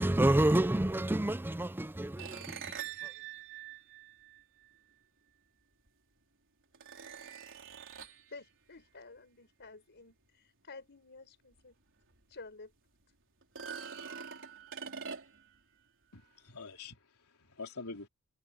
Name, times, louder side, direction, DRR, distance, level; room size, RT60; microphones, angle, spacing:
voice 1, 0.0-2.4, right 1 dB, 10° right, 0.5 m, -28 dB
sound 1, 2.2-4.7 5.9-6.0 6.7-8.3 11.6-11.7 12.1-12.2 13.4-15.6, right 7 dB, 60° right, 4.2 m, -44 dB
voice 2, 8.3-11.8 12.3-12.7 13.1-13.2, left 3 dB, 55° left, 4.9 m, -51 dB
voice 3, 16.1-18.1, left 3 dB, 75° left, 3.7 m, -46 dB
head